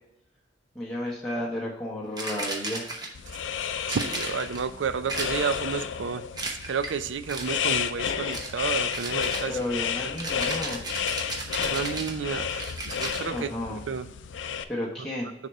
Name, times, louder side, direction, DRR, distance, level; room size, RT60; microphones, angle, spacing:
voice 1, 0.7-2.9 9.5-10.8 13.3-13.8 14.7-15.3, left 1 dB, 5° left, -7 dB, 0.9 m, -32 dB
sound 1, 2.2-3.3 3.9-4.7 5.1-5.7 6.3-7.0 7.3-7.7 8.3-8.6 8.9-13.2, right 2 dB, 25° right, 0.9 m, -35 dB
sound 2, 3.1-14.6, left 8 dB, 85° left, 0.4 m, -32 dB
voice 2, 3.9-9.6 10.0-10.1 11.6-14.1 15.0-15.1, right 6 dB, 80° right, 12 dB, 0.4 m, -31 dB
6.4 x 3.4 x 5.2 m, 0.85 s
head